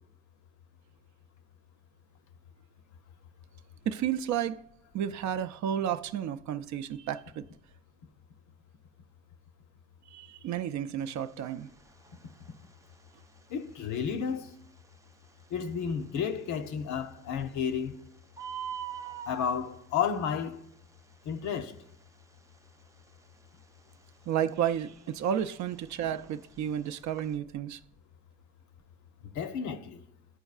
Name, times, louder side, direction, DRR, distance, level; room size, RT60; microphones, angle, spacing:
voice 1, 3.9-4.6 4.9-7.4 10.1-11.7 24.3-27.8, right 9 dB, 70° right, 0.5 m, -32 dB
Bird, 11.0-27.4, right 7 dB, 10° right, 0.4 m, -47 dB
voice 2, 13.5-14.5 15.5-17.9 19.3-20.6 21.2-21.7 29.3-30.0, left 7 dB, 75° left, 0.7 m, -32 dB
12.5 x 4.5 x 2.4 m
cardioid pair, 90°, 30 cm